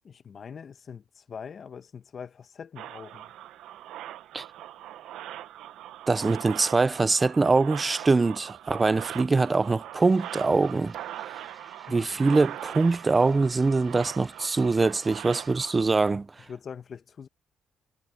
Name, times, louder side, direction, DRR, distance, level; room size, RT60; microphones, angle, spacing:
voice 1, 0.0-3.3 11.9-12.2 16.5-17.3, left 6 dB, 50° left, 1.2 m, -43 dB
sound 1, 2.8-15.8, right 12 dB, 85° right, 0.9 m, -41 dB
voice 2, 6.1-10.9 11.9-16.4, right 3 dB, 25° right, 0.4 m, -23 dB
sound 2, 9.9-15.7, right 1 dB, 10° right, 6.9 m, -54 dB
cardioid pair, 90°, 0 cm